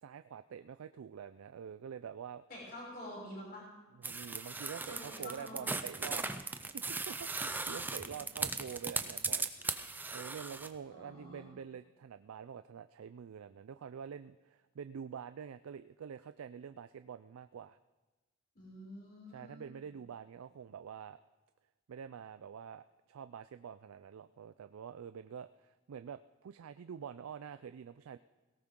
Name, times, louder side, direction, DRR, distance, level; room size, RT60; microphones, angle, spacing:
voice 1, 0.0-2.4 4.0-9.5 10.1-17.8 19.3-21.2 21.9-28.2, right 7 dB, 90° right, 12 dB, 0.4 m, -47 dB
voice 2, 2.5-3.6 4.8-5.6 10.9-11.5 18.5-19.8, left 1 dB, 45° left, -5 dB, 6.4 m, -48 dB
sound 1, 4.0-10.7, right 3 dB, 10° right, 0.4 m, -38 dB
17.5 x 17.5 x 3.7 m, 1.2 s
head